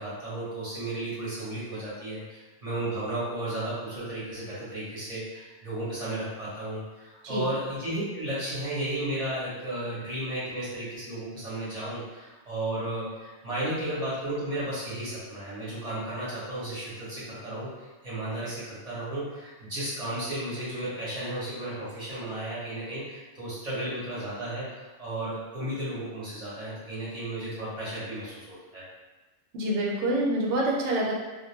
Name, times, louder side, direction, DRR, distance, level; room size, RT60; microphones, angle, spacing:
voice 1, 0.0-28.8, right 1 dB, 35° right, -9 dB, 0.8 m, -34 dB
voice 2, 29.5-31.1, right 1 dB, 70° right, -2 dB, 0.9 m, -26 dB
2.2 x 2.2 x 3.1 m, 1.2 s
omnidirectional pair, 1.3 m